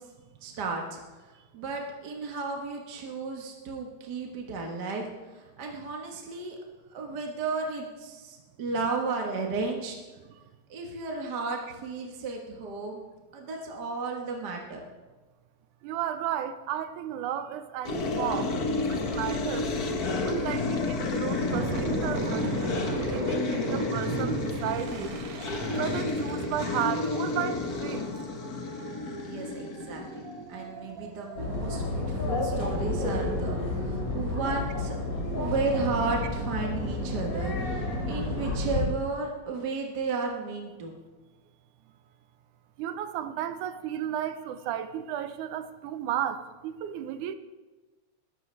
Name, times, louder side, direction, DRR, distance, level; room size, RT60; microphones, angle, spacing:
voice 1, 0.4-1.0 1.5-5.1 5.3-6.6 6.9-9.9 10.7-13.0 13.3-14.8 29.2-35.0 35.3-41.0, right 4 dB, 45° right, 1.4 m, -33 dB
voice 2, 15.8-19.7 20.2-25.2 25.8-28.1 42.8-47.3, right 10 dB, 85° right, 2.2 m, -34 dB
sound 1, 17.8-30.8, left 3 dB, 70° left, 0.8 m, -31 dB
sound 2, 21.3-31.9, right 5 dB, 65° right, 2.1 m, -38 dB
sound 3, 31.4-38.8, left 2 dB, 30° left, 2.9 m, -30 dB
21.0 x 13.0 x 3.3 m
omnidirectional pair, 3.6 m